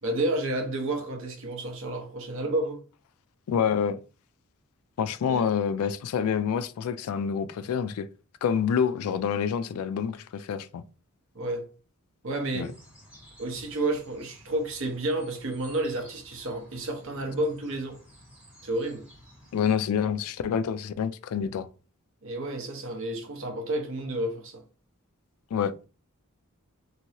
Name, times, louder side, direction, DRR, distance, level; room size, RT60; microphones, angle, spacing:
voice 1, 0.0-2.8 5.3-5.5 11.3-11.7 12.2-12.7 13.4-18.0 18.6-19.0 22.2-24.6, right 1 dB, 60° right, 0.9 m, -30 dB
voice 2, 3.5-4.0 5.0-8.1 8.4-10.8 12.5-12.7 19.5-21.7 25.5-25.7, left 7 dB, 70° left, 0.3 m, -27 dB
sound 1, 12.6-19.8, equal, 5° right, 1.6 m, -53 dB
3.0 x 2.6 x 2.8 m
head